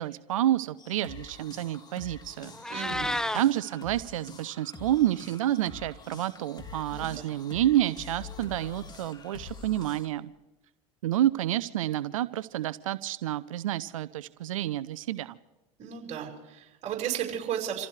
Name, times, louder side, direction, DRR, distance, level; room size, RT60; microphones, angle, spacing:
voice 1, 0.0-2.5 2.8-3.0 3.3-10.3 11.0-15.4, right 13 dB, 85° right, 16 dB, 0.6 m, -29 dB
sound 1, 0.8-10.1, left 5 dB, 25° left, 2.3 m, -46 dB
Meow, 2.4-3.4, left 1 dB, 5° left, 0.8 m, -31 dB
voice 2, 2.7-3.1 6.9-7.2 15.8-17.9, right 9 dB, 45° right, -1 dB, 5.4 m, -34 dB
28.0 x 15.5 x 3.3 m, 1.0 s
hypercardioid pair, 90°, 17 cm